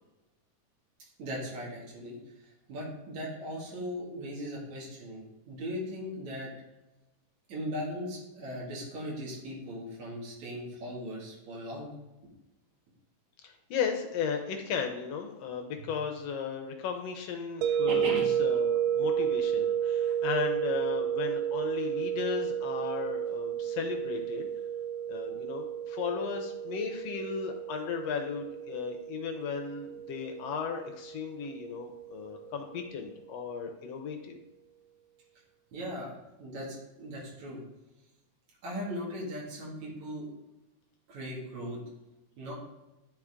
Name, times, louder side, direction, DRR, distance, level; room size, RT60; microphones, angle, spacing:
voice 1, 1.2-6.5 7.5-11.9 15.8-15.9 17.9-18.3 35.7-36.1 36.4-37.6 38.6-40.3 41.1-41.8 42.4-42.5, equal, 65° right, -4 dB, 3.4 m, -38 dB
voice 2, 13.4-18.1 18.4-24.5 25.1-34.4, left 6 dB, 75° left, 4 dB, 1.5 m, -35 dB
sound 1, 17.6-32.5, right 9 dB, 90° right, 2.1 m, -32 dB
10.5 x 5.1 x 3.6 m, 1.0 s
omnidirectional pair, 3.7 m